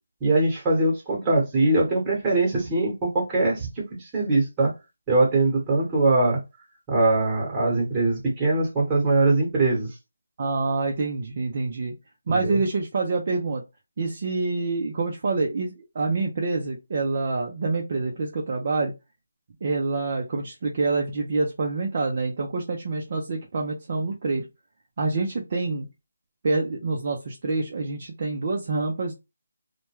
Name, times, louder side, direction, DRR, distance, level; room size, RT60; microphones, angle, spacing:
voice 1, 0.2-4.7 5.1-6.4 6.9-9.9 12.3-12.6, right 2 dB, 15° right, 1.0 m, -22 dB
voice 2, 10.4-11.9 12.3-13.6 14.0-18.9 19.6-24.5 25.0-25.9 26.4-29.1, right 3 dB, 40° right, 0.5 m, -26 dB
2.2 x 2.2 x 2.9 m
figure-of-eight pair, 165°, 0 cm